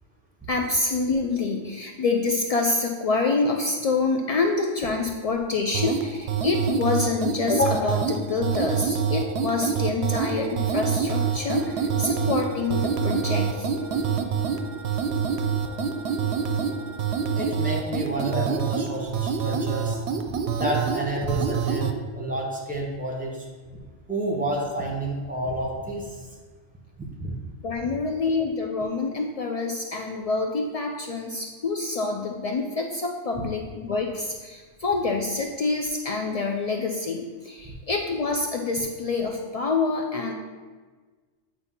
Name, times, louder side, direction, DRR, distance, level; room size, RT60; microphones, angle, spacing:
voice 1, 0.5-13.7 27.6-40.3, left 3 dB, 75° left, 2 dB, 0.3 m, -26 dB
sound 1, 5.7-22.0, right 6 dB, 70° right, 0.8 m, -26 dB
Wind instrument woodwind instrument, 11.1-17.5, right 2 dB, 25° left, 1.4 m, -42 dB
voice 2, 17.3-23.5 24.1-26.3 27.2-27.3 33.4-33.5, right 1 dB, 5° right, -3 dB, 1.2 m, -30 dB
8.0 x 2.7 x 5.6 m, 1.4 s
omnidirectional pair, 1.2 m